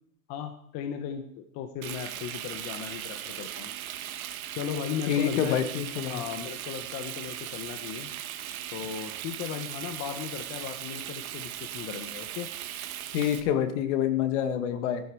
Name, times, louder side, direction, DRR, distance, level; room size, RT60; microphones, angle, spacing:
voice 1, 0.3-3.7 4.5-5.6 6.1-8.1 8.7-12.5 14.7-14.8, left 8 dB, 35° left, 6 dB, 1.3 m, -36 dB
Frying (food), 1.8-13.4, right 11 dB, 65° right, 1.8 m, -38 dB
voice 2, 5.1-6.2 13.1-15.0, left 9 dB, 50° left, 8 dB, 2.1 m, -27 dB
14.0 x 12.0 x 4.8 m, 0.69 s
hypercardioid pair, 135°, 45 cm